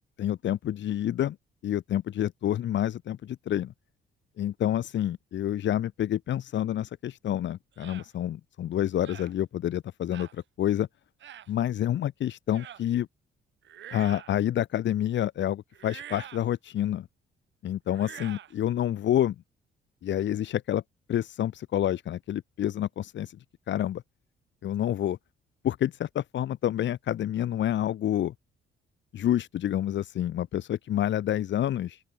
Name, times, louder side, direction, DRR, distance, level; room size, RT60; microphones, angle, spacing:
voice 1, 0.2-1.4 1.6-3.7 4.4-10.9 11.5-13.1 13.9-17.1 17.6-19.3 20.0-20.8 21.1-23.4 23.7-24.0 24.6-25.2 25.6-28.3 29.1-32.0, left 11 dB, 65° left, 1.5 m, -28 dB
sound 1, 7.8-8.1 9.0-9.3 10.1-10.4 11.2-11.5 12.5-12.8 13.6-14.4 15.7-16.5 17.9-18.5, right 11 dB, 70° right, 4.2 m, -45 dB
open air
cardioid pair, 90°, 20 cm